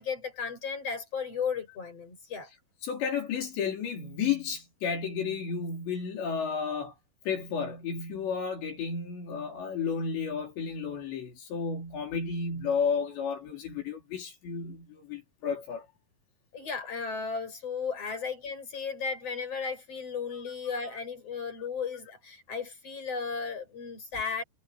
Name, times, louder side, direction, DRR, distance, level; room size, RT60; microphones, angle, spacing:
voice 1, 0.0-2.5 16.5-24.4, left 5 dB, 35° left, 8.8 m, -35 dB
voice 2, 2.8-6.9 7.3-15.9, left 6 dB, 75° left, 6.1 m, -32 dB
omnidirectional pair, 5.1 m